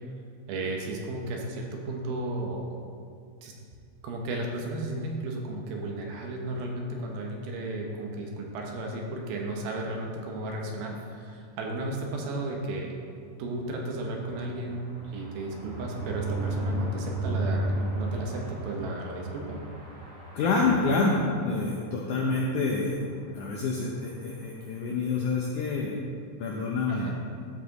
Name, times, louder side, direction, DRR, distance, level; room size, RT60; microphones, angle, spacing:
voice 1, 0.5-2.8 3.4-3.5 4.0-13.0 13.4-19.6 26.9-27.2, right 2 dB, 75° right, 0 dB, 2.7 m, -34 dB
sound 1, 13.1-21.9 22.3-22.5 22.7-22.8 23.1-23.4, right 2 dB, 45° right, 2.5 m, -35 dB
voice 2, 20.3-23.1 23.3-25.9 26.4-27.1, left 3 dB, 80° left, -2 dB, 1.8 m, -27 dB
13.0 x 4.9 x 4.0 m, 2.3 s
omnidirectional pair, 4.4 m